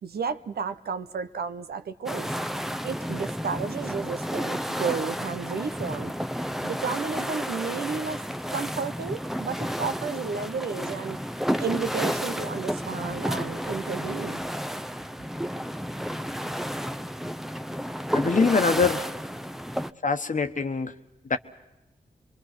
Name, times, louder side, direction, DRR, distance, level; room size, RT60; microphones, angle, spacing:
voice 1, 0.0-2.4 2.8-6.1 6.6-8.2 8.5-11.2 11.6-14.4, right 5 dB, 75° right, 10 dB, 1.0 m, -32 dB
sound 1, 2.1-19.9, equal, ahead, 0.7 m, -31 dB
voice 2, 18.1-19.1 20.0-20.9 21.3-21.4, left 4 dB, 55° left, 8 dB, 1.3 m, -23 dB
25.0 x 22.5 x 6.1 m, 0.95 s
cardioid pair, 50°, 16 cm